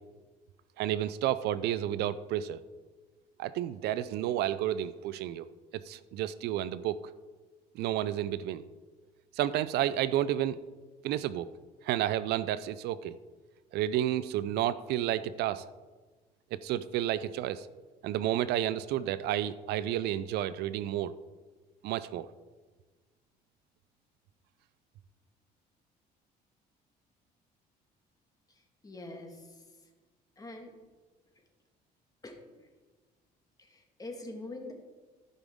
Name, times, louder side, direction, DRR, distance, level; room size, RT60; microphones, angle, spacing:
voice 1, 0.8-2.6 3.4-5.5 5.7-7.0 7.7-8.6 9.4-10.6 11.0-11.5 11.8-13.1 13.7-15.6 16.5-17.7 18.0-21.1 21.8-22.3, right 12 dB, 80° right, 16 dB, 0.4 m, -31 dB
voice 2, 28.5-29.6 30.4-30.7 32.2-32.7 33.6-34.7, left 2 dB, 20° left, 3 dB, 1.6 m, -45 dB
14.5 x 5.3 x 3.6 m, 1.3 s
cardioid pair, 110°, 17 cm